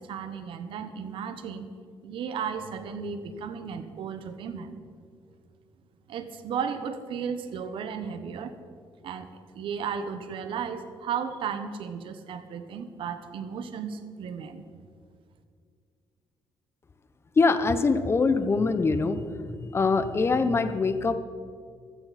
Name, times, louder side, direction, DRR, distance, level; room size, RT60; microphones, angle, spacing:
voice 1, 0.0-1.7 2.0-4.8 6.1-8.5 9.0-9.3 9.5-14.6, right 7 dB, 70° right, 9 dB, 1.2 m, -34 dB
voice 2, 17.4-19.2 19.7-21.2, left 4 dB, 30° left, 11 dB, 0.9 m, -23 dB
15.5 x 14.0 x 4.3 m, 2.2 s
cardioid pair, 120°, 9 cm